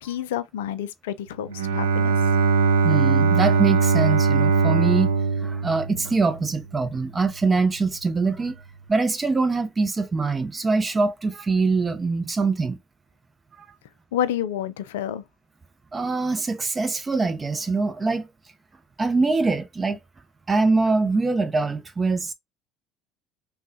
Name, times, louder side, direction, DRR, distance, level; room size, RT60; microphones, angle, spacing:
voice 1, 0.0-2.2 14.1-15.2, left 10 dB, 75° left, 0.3 m, -29 dB
Bowed string instrument, 1.5-6.4, right 5 dB, 85° right, 0.4 m, -21 dB
voice 2, 2.8-5.1 5.4-8.6 8.9-12.8 15.9-18.3 19.0-20.0 20.5-22.3, right 3 dB, 25° right, 0.7 m, -23 dB
3.4 x 2.2 x 2.7 m
hypercardioid pair, 65°, 0 cm